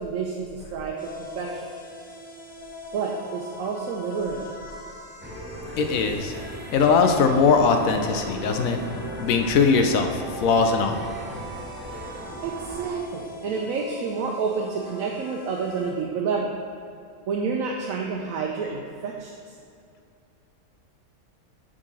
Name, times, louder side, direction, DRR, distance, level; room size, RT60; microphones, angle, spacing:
voice 1, 0.0-1.7 2.9-4.5 12.4-16.5 17.3-19.3, right 5 dB, 75° right, 0 dB, 1.1 m, -29 dB
sound 1, 1.0-15.9, left 1 dB, 55° left, 1.4 m, -42 dB
sound 2, 5.2-13.0, right 1 dB, 10° right, 0.6 m, -37 dB
voice 2, 5.8-6.3 6.7-8.8 9.2-11.0, left 5 dB, 75° left, 5 dB, 1.0 m, -20 dB
7.5 x 3.9 x 6.2 m, 2.5 s
omnidirectional pair, 1.5 m